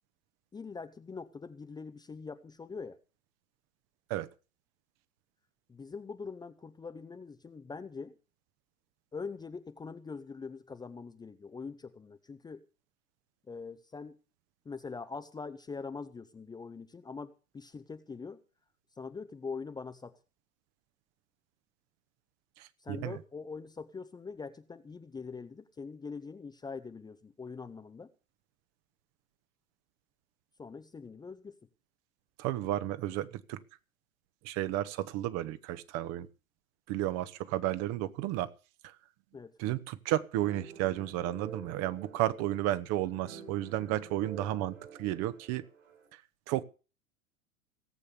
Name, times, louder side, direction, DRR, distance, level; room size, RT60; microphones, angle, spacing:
voice 1, 0.5-3.0 5.7-8.1 9.1-12.6 13.5-14.2 14.6-18.4 19.0-20.1 22.8-28.1 30.6-31.6 39.3-39.5, left 4 dB, 10° left, 10 dB, 0.9 m, -43 dB
voice 2, 22.6-23.2 32.4-33.6 34.4-36.3 36.9-38.5 38.8-38.9 39.6-45.6 46.1-46.2 46.5-46.6, right 14 dB, 35° right, 13 dB, 1.3 m, -33 dB
sound 1, 40.4-46.1, right 6 dB, 65° right, 6.0 m, -49 dB
18.0 x 8.3 x 7.0 m, 0.33 s
figure-of-eight pair, 90°, 41 cm